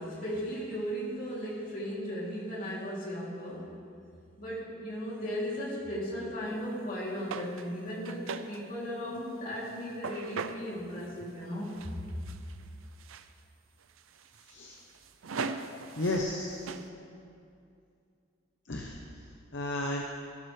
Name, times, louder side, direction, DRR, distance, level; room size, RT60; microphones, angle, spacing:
voice 1, 0.0-3.7 4.4-12.2, equal, 45° left, -6 dB, 3.0 m, -36 dB
sound 1, 7.3-8.7 9.1-10.6 11.0-11.4 11.6-12.7 13.0-13.3 13.8-16.4 16.7-16.9, right 5 dB, 85° right, 0.5 m, -40 dB
voice 2, 16.0-16.7 18.7-18.9 19.5-20.0, left 1 dB, 60° left, 0 dB, 0.9 m, -32 dB
15.5 x 12.5 x 3.3 m, 2.5 s
head